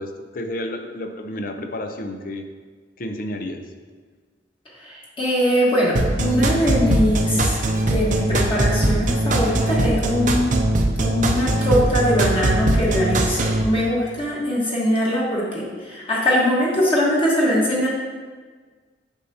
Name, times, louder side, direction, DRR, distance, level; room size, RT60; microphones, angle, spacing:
voice 1, 0.0-2.5 3.0-3.6, left 1 dB, 50° left, 6 dB, 0.6 m, -31 dB
voice 2, 4.8-10.6 11.0-17.9, equal, 30° left, -6 dB, 1.4 m, -22 dB
sound 1, 6.0-13.6, right 1 dB, 45° right, 0.6 m, -20 dB
8.0 x 5.6 x 2.8 m, 1.5 s
head